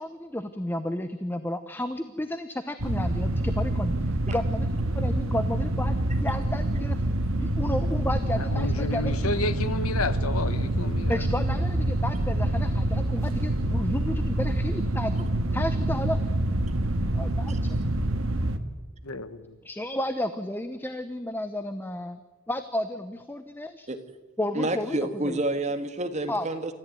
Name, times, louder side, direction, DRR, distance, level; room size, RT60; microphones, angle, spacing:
voice 1, 0.0-7.0 7.4-9.3 11.1-15.2 15.5-16.2 17.1-17.8 19.6-22.2 22.5-23.9 24.4-25.4 26.3-26.5, left 1 dB, 10° left, 10 dB, 0.7 m, -32 dB
sound 1, 2.8-18.6, right 1 dB, 75° right, 1.6 m, -26 dB
voice 2, 8.4-11.2 19.0-19.6, left 2 dB, 80° left, 14 dB, 1.2 m, -31 dB
voice 3, 24.5-26.7, right 2 dB, 30° right, 8 dB, 1.7 m, -29 dB
28.5 x 14.0 x 9.1 m, 1.3 s
head